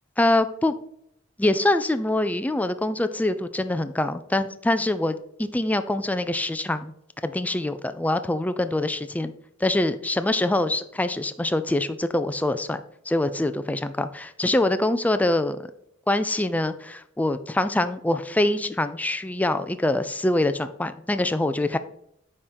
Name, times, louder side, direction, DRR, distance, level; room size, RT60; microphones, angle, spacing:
voice 1, 0.2-0.7 1.4-6.9 7.2-9.3 9.6-15.7 16.1-21.8, left 1 dB, 10° left, 10 dB, 0.4 m, -24 dB
9.7 x 3.7 x 4.3 m, 0.74 s
head